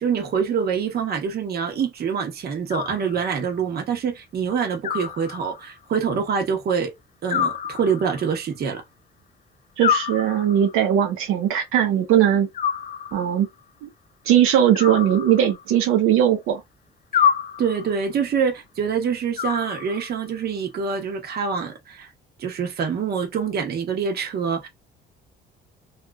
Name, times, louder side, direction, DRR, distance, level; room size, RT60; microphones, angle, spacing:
voice 1, 0.0-6.9 7.2-8.8 17.1-17.3 17.6-22.1 22.4-24.7, right 6 dB, 50° right, 0.9 m, -25 dB
Animal, 2.7-3.6 4.8-5.8 7.3-8.4 9.8-10.8 12.5-13.5 14.7-15.8 17.1-18.0 19.4-20.3, left 8 dB, 40° left, 0.4 m, -27 dB
voice 2, 9.8-12.5 13.1-13.5 13.8-13.9 14.3-16.6, right 10 dB, 85° right, 0.8 m, -19 dB
2.9 x 2.4 x 2.3 m
cardioid pair, 115°, 21 cm